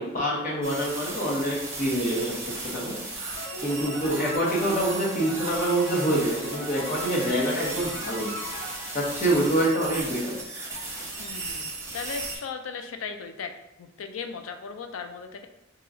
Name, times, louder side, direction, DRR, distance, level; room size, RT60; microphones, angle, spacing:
voice 1, 0.0-3.0 3.6-8.3 8.9-10.4, right 1 dB, 45° left, -4 dB, 0.9 m, -26 dB
sound 1, 0.6-12.4, right 2 dB, 15° right, 0.7 m, -36 dB
sound 2, 3.4-9.7, left 1 dB, 70° left, 1.0 m, -39 dB
voice 2, 11.2-13.5 13.8-15.5, left 5 dB, 85° left, 7 dB, 0.4 m, -37 dB
2.9 x 2.4 x 3.7 m, 0.93 s
head